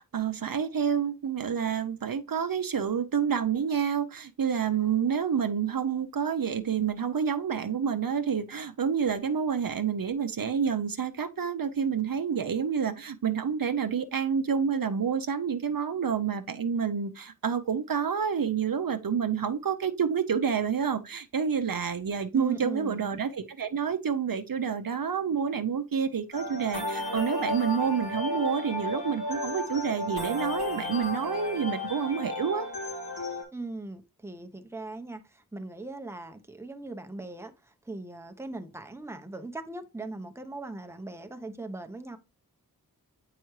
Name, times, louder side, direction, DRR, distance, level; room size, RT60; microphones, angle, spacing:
voice 1, 0.0-32.7, right 7 dB, 65° right, 0.6 m, -28 dB
voice 2, 22.3-23.1 33.5-42.2, right 2 dB, 5° right, 0.7 m, -39 dB
sound 1, 26.3-33.4, left 2 dB, 85° left, 2.7 m, -33 dB
7.8 x 4.7 x 3.1 m
wide cardioid pair, 40°, 37 cm